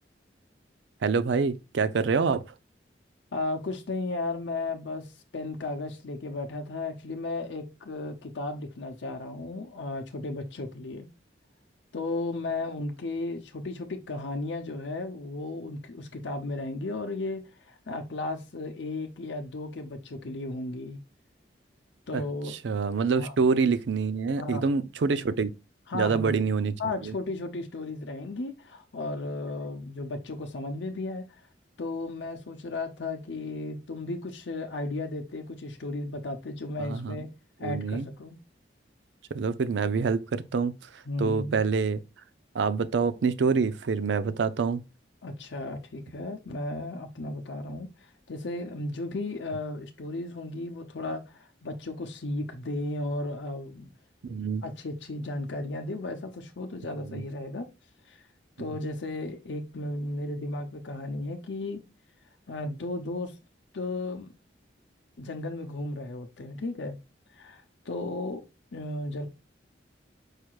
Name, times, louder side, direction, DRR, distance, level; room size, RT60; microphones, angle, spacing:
voice 1, 1.0-2.4 22.1-22.2 22.5-25.5 25.9-27.1 36.8-37.2 37.6-38.1 39.3-42.0 42.5-44.8 54.2-54.6 57.1-57.2, right 5 dB, 80° right, 0.5 m, -26 dB
voice 2, 3.3-11.1 11.9-21.0 22.1-22.5 23.1-23.3 24.4-24.7 25.9-26.4 26.8-31.2 31.8-37.3 37.6-38.4 41.1-41.6 45.2-53.9 54.6-57.6 58.1-58.2 58.6-61.9 62.5-63.4 63.7-64.3 65.2-67.0 67.3-68.4 68.7-69.3, left 2 dB, 80° left, 0.7 m, -34 dB
4.8 x 4.6 x 2.4 m
head